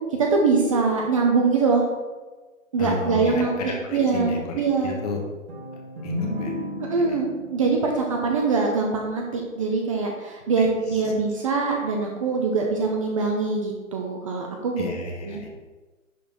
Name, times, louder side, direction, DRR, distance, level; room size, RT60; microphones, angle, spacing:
voice 1, 0.2-1.9 2.7-5.0 6.9-14.8 15.2-15.4, right 4 dB, 25° right, 1 dB, 0.7 m, -23 dB
voice 2, 2.8-5.2 6.0-6.6 7.0-7.2 10.6-11.0 14.8-15.5, left 3 dB, 30° left, 1 dB, 1.3 m, -33 dB
sound 1, 5.5-9.2, left 1 dB, 45° right, 2.4 m, -34 dB
11.0 x 4.2 x 4.3 m, 1.3 s
hypercardioid pair, 155°, 39 cm